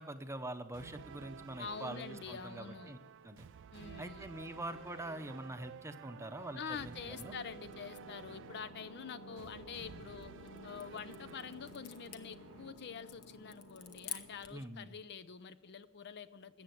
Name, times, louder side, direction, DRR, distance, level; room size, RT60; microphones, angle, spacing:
voice 1, 0.0-3.0 3.2-3.5 4.0-7.3 14.5-14.9, right 1 dB, 15° right, 8 dB, 0.8 m, -44 dB
sound 1, 0.7-12.7, right 7 dB, 55° right, 0.4 m, -53 dB
voice 2, 1.6-2.9 3.7-4.2 6.5-10.3 10.6-16.6, left 6 dB, 50° left, 13 dB, 0.5 m, -46 dB
sound 2, 7.2-14.5, left 1 dB, 90° left, 2.3 m, -54 dB
sound 3, 10.0-14.7, left 8 dB, 70° left, 1.1 m, -50 dB
14.0 x 8.3 x 7.8 m, 1.0 s
head